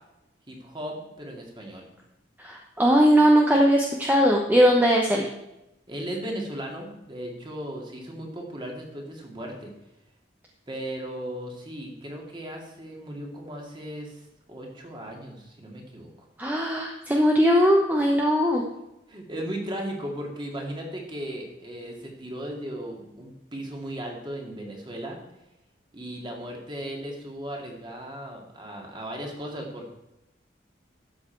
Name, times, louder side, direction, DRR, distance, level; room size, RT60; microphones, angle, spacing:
voice 1, 0.5-1.9 5.9-9.7 10.7-16.3 19.1-25.2 25.9-29.9, right 1 dB, 25° right, 0 dB, 2.2 m, -36 dB
voice 2, 2.4-5.3 16.4-18.6, equal, 10° right, 0 dB, 0.9 m, -20 dB
12.5 x 7.4 x 4.5 m, 0.91 s
head